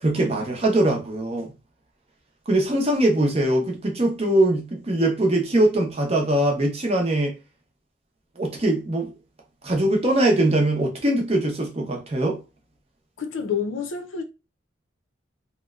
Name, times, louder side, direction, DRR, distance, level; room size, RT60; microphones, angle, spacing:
voice 1, 0.0-1.5 2.5-7.3 8.4-9.1 9.6-12.4, right 1 dB, 30° right, 0.6 m, -22 dB
voice 2, 13.2-14.2, left 6 dB, 85° left, 0.5 m, -28 dB
2.8 x 2.1 x 2.3 m
head